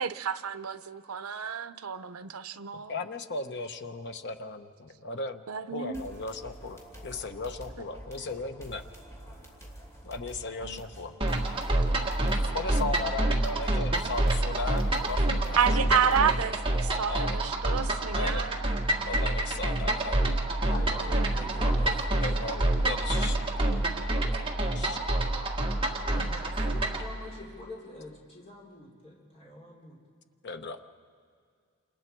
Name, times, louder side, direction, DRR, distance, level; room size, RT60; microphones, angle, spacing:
voice 1, 0.0-3.0 5.5-6.0 10.6-10.8 15.6-18.7 21.1-21.4, right 7 dB, 75° right, 11 dB, 0.7 m, -30 dB
voice 2, 2.9-5.4 5.7-8.8 10.0-11.1 12.5-15.6 16.0-16.3 17.1-17.4 18.1-18.5 19.0-20.2 22.2-23.4 24.7-25.0 30.4-30.8, left 3 dB, 50° left, 7 dB, 1.0 m, -36 dB
sound 1, 5.9-16.6, right 1 dB, 15° left, 3.0 m, -47 dB
sound 2, 11.2-27.1, right 1 dB, 25° right, 1.6 m, -27 dB
voice 3, 20.6-22.3 24.1-24.4 26.0-30.0, left 1 dB, 30° left, -4 dB, 4.0 m, -44 dB
28.0 x 27.0 x 4.6 m, 2.1 s
head